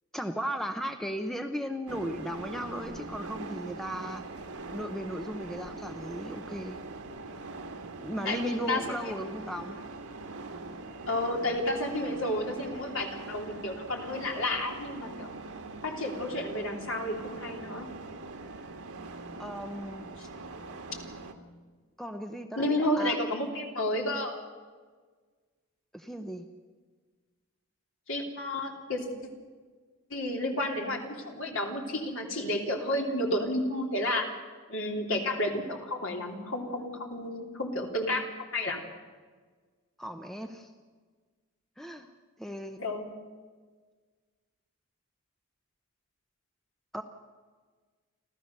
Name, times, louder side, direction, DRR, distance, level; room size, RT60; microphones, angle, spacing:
voice 1, 0.1-4.2 4.7-6.8 8.0-9.8 19.4-20.1 22.0-23.2 25.9-26.5 40.0-40.7 41.8-42.1 42.4-42.8 46.9-47.0, equal, ahead, 6 dB, 0.8 m, -36 dB
sound 1, 1.9-21.3, right 3 dB, 85° right, 1.7 m, -42 dB
voice 2, 8.2-9.1 11.1-15.3 15.8-17.9 20.2-20.3 22.6-24.4 28.1-29.1 30.1-34.3 34.7-38.8 42.8-43.1, left 1 dB, 65° left, 1 dB, 3.2 m, -31 dB
30.0 x 13.0 x 6.7 m, 1.5 s
head